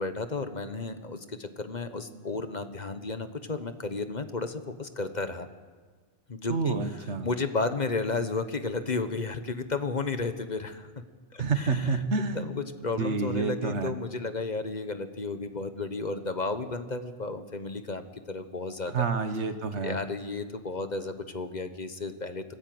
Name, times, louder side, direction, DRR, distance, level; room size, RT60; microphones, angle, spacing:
voice 1, 0.0-5.5 6.3-10.9 11.3-11.9 12.3-18.0 18.3-19.1 19.8-22.5, left 3 dB, 40° left, 9 dB, 1.2 m, -33 dB
voice 2, 6.5-7.3 11.4-12.4 13.0-13.9 18.9-20.0, right 4 dB, 80° right, 9 dB, 1.6 m, -28 dB
25.5 x 15.5 x 7.8 m, 1.4 s
omnidirectional pair, 1.2 m